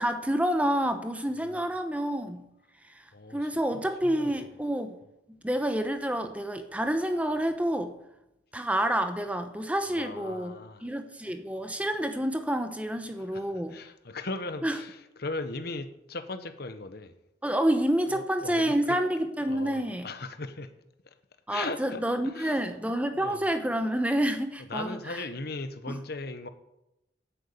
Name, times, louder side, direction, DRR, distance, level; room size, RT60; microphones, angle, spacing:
voice 1, 0.0-2.4 3.3-5.0 5.4-7.9 8.5-10.5 10.8-13.8 14.6-14.8 17.4-20.1 21.5-25.2 25.9-26.0, right 1 dB, 5° right, 0.9 m, -28 dB
voice 2, 1.4-1.7 3.1-4.5 9.9-10.9 13.2-17.1 18.1-19.0 19.4-20.7 21.5-22.6 23.1-23.5 24.7-26.5, left 3 dB, 55° left, 1.1 m, -38 dB
10.5 x 9.3 x 8.6 m
head